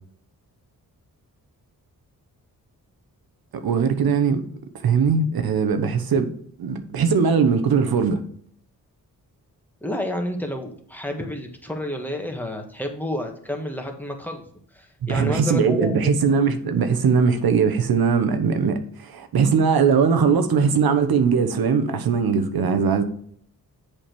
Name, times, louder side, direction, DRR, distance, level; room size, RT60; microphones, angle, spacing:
voice 1, 3.5-4.4 4.8-6.3 6.6-8.2 15.1-23.0, right 6 dB, 80° right, 1.1 m, -20 dB
voice 2, 9.8-14.4 14.7-16.1, left 1 dB, 5° left, 1.5 m, -30 dB
7.5 x 5.1 x 4.5 m
cardioid pair, 90°, 36 cm